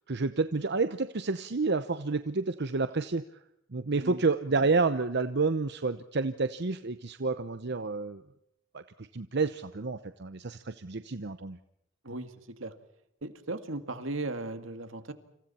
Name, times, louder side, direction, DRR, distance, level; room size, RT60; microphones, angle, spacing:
voice 1, 0.1-3.2 3.7-8.2 8.7-11.6, right 3 dB, 60° right, 11 dB, 0.9 m, -29 dB
voice 2, 12.0-12.8 13.2-15.1, right 2 dB, 80° right, 8 dB, 2.2 m, -37 dB
29.0 x 27.0 x 4.4 m, 0.79 s
head